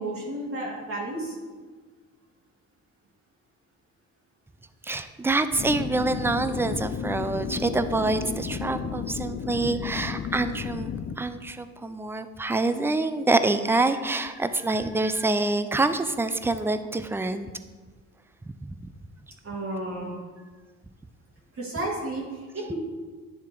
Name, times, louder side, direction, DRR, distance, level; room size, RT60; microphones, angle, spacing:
voice 1, 0.0-1.4 19.4-20.1 21.5-22.7, right 1 dB, 50° right, -3 dB, 1.9 m, -32 dB
voice 2, 4.8-17.5 18.4-18.5, right 2 dB, 10° right, 11 dB, 0.4 m, -26 dB
sound 1, 5.6-11.2, left 7 dB, 55° left, 0.5 m, -33 dB
10.5 x 3.5 x 4.5 m, 1.4 s
cardioid pair, 90°, 30 cm